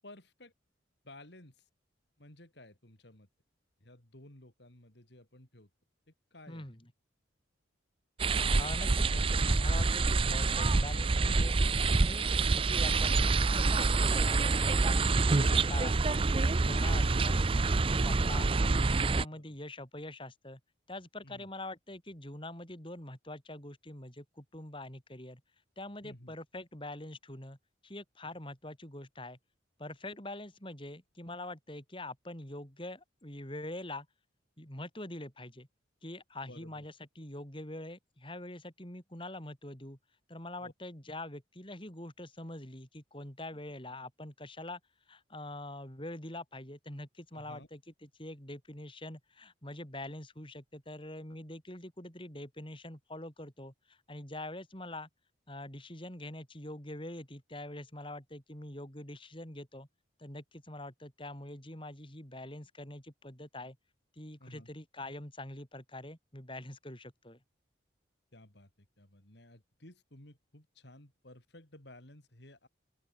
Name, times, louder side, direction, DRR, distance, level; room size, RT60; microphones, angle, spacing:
voice 1, 0.0-0.5 1.0-1.7 2.2-3.3 3.8-5.7 6.1-6.7 17.2-17.4 19.3-19.6 21.2-21.5 26.0-26.3 36.5-36.8 40.6-40.7 43.5-43.6 47.3-47.7 64.4-64.7 68.3-72.7, left 1 dB, 60° left, 4.2 m, -55 dB
voice 2, 6.5-6.8 8.6-11.6 12.0-16.3 16.6-18.5 18.9-20.6 20.9-25.4 25.8-27.6 27.8-29.4 29.8-34.1 34.6-35.7 36.0-40.0 40.3-44.8 45.1-55.1 55.5-59.9 60.2-63.8 64.2-67.4, left 1 dB, 25° left, 4.7 m, -44 dB
sound 1, 8.2-19.2, right 3 dB, 25° right, 0.5 m, -27 dB
open air
head